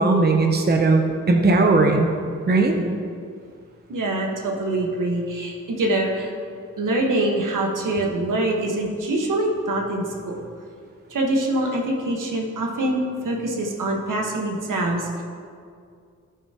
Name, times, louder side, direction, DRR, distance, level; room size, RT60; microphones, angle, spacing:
voice 1, 0.0-2.1 2.5-2.8, right 3 dB, 30° right, 3 dB, 0.7 m, -18 dB
voice 2, 2.5-3.0 3.9-6.3 6.8-10.4 11.1-15.2, right 1 dB, 80° right, 0 dB, 1.4 m, -24 dB
12.5 x 8.3 x 2.9 m, 2.2 s
wide cardioid pair, 105°, 31 cm